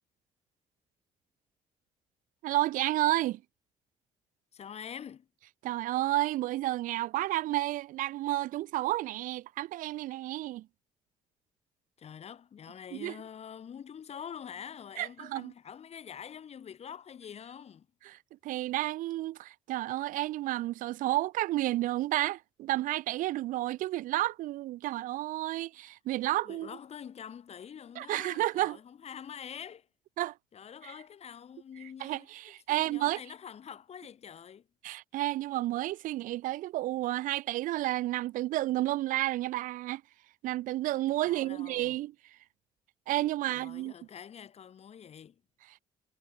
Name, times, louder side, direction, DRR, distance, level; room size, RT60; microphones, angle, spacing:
voice 1, 2.4-3.4 5.6-10.7 12.9-13.2 15.0-15.5 18.1-18.2 18.4-26.7 28.0-28.8 30.2-30.3 32.0-33.2 34.8-40.0 40.4-42.1 43.1-43.9, right 16 dB, 70° right, 0.4 m, -31 dB
voice 2, 4.5-5.3 12.0-17.9 26.4-29.9 30.5-32.3 32.7-34.7 41.2-42.0 43.5-45.4, left 8 dB, 50° left, 1.3 m, -46 dB
cardioid pair, 80°, 14 cm